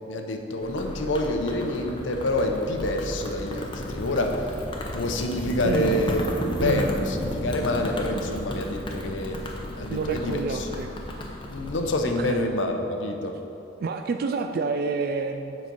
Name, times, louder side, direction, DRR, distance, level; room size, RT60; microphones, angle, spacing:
voice 1, 0.1-4.6 4.9-10.7 11.5-13.4, left 1 dB, 80° left, 4 dB, 0.8 m, -27 dB
sound 1, 0.6-12.3, left 1 dB, 25° left, 0.7 m, -33 dB
voice 2, 5.6-6.0 6.6-6.9 9.9-10.9 12.2-12.5 13.8-15.6, right 4 dB, 50° right, 6 dB, 0.3 m, -28 dB
7.6 x 5.1 x 5.2 m, 2.8 s
head